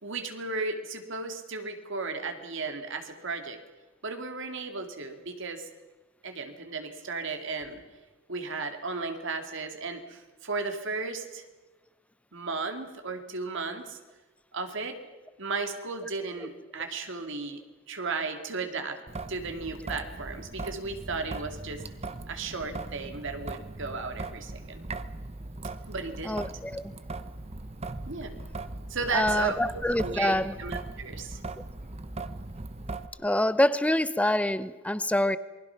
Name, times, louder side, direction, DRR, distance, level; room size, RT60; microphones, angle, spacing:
voice 1, 0.0-3.6 4.0-5.7 6.2-7.8 8.3-11.4 12.3-14.0 14.5-15.0 15.4-17.6 17.9-19.0 19.3-21.8 22.3-24.9 25.9-26.4 28.1-28.3 28.9-31.4, right 4 dB, 65° right, 6 dB, 2.4 m, -35 dB
Traffic noise roadway noise / Drip / Trickle dribble, 19.1-33.1, right 2 dB, 30° right, 0.9 m, -39 dB
voice 2, 26.2-26.9 29.1-30.6 33.2-35.4, left 1 dB, 5° left, 15 dB, 0.7 m, -26 dB
28.0 x 21.0 x 5.9 m, 1.2 s
head